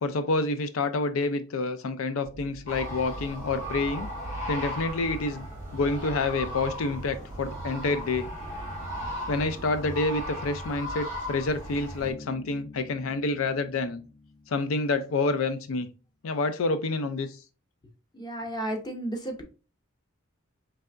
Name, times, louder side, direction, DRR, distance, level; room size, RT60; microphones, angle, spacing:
voice 1, 0.0-4.1 4.5-5.5 5.7-8.3 9.3-14.0 14.5-15.9 16.2-17.4, left 3 dB, 90° left, 0.5 m, -28 dB
sound 1, 2.2-10.0, right 2 dB, 35° right, 0.5 m, -44 dB
sound 2, 2.7-12.1, equal, 40° left, 1.9 m, -37 dB
Bass guitar, 12.0-15.5, left 3 dB, 60° left, 2.2 m, -48 dB
voice 2, 18.1-19.4, right 1 dB, 20° left, 0.9 m, -33 dB
4.6 x 3.3 x 2.4 m
head